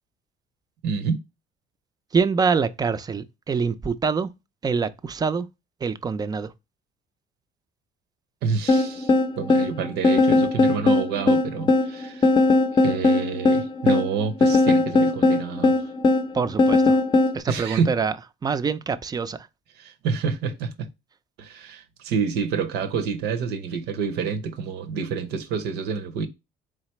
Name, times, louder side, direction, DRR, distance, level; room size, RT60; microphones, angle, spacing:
voice 1, 0.8-1.2 8.4-12.3 12.8-15.8 17.5-17.9 19.8-20.9 21.4-26.3, right 6 dB, 80° right, 0.7 m, -28 dB
voice 2, 2.1-4.3 4.6-5.5 5.8-6.5 16.3-17.0 17.3-18.1 18.4-19.5, right 5 dB, 25° right, 0.4 m, -25 dB
sound 1, 8.7-17.4, left 2 dB, 30° left, 0.5 m, -19 dB
4.0 x 3.2 x 3.0 m
cardioid pair, 110°, 17 cm